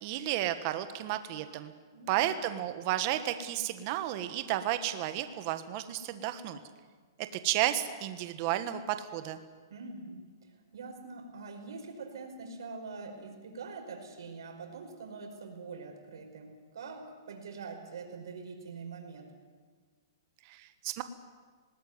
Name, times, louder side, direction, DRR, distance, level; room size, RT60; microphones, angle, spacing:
voice 1, 0.0-1.7 2.1-6.6 7.4-9.4 20.4-21.0, right 13 dB, 35° right, 10 dB, 1.4 m, -32 dB
voice 2, 1.9-2.3 9.7-19.3, right 4 dB, 80° right, 3 dB, 5.2 m, -44 dB
19.5 x 19.0 x 9.5 m, 1.5 s
hypercardioid pair, 155°, 2 cm